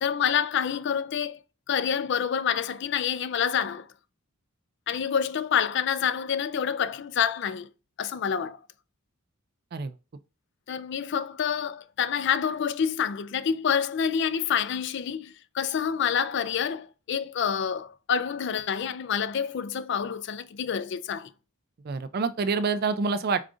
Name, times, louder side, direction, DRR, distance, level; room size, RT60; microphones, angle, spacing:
voice 1, 0.0-1.4 1.7-3.9 4.9-7.7 8.0-8.6 10.7-21.3, left 7 dB, 55° left, 0.3 m, -27 dB
voice 2, 21.8-23.4, right 4 dB, 45° right, 0.4 m, -27 dB
4.9 x 2.4 x 3.7 m
head